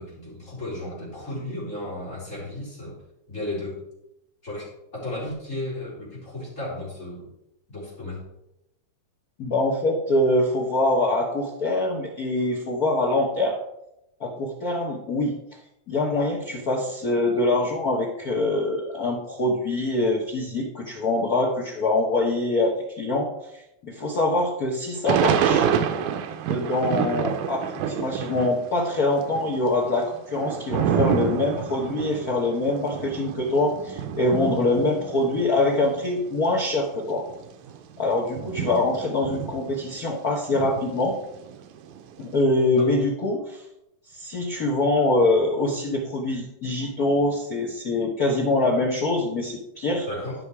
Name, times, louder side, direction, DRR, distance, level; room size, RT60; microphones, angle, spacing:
voice 1, 0.0-3.0 3.3-3.8 4.4-7.3 7.7-8.2 42.7-42.9 50.1-50.4, left 1 dB, 25° left, -7 dB, 4.1 m, -34 dB
voice 2, 9.4-13.6 14.2-15.3 15.9-25.7 26.5-37.2 38.0-41.1 42.2-43.6 44.1-50.1, left 2 dB, 75° left, -1 dB, 0.8 m, -24 dB
Thunder / Rain, 25.1-28.7 29.0-36.1 36.7-36.8 36.9-40.1 40.5-42.2, right 8 dB, 90° right, 2.3 m, -28 dB
12.5 x 5.6 x 4.8 m, 0.85 s
omnidirectional pair, 3.6 m